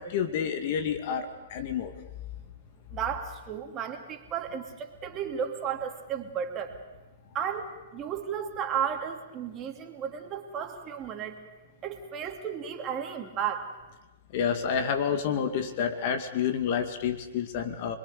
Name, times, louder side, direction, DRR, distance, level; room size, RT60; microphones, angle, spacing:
voice 1, 0.0-1.9 14.3-18.0, left 7 dB, 50° left, 7 dB, 2.3 m, -29 dB
voice 2, 2.9-6.8 7.3-11.4 11.8-13.7, right 8 dB, 30° right, 4 dB, 2.8 m, -34 dB
26.5 x 22.0 x 6.8 m, 1.1 s
hypercardioid pair, 115°, 0 cm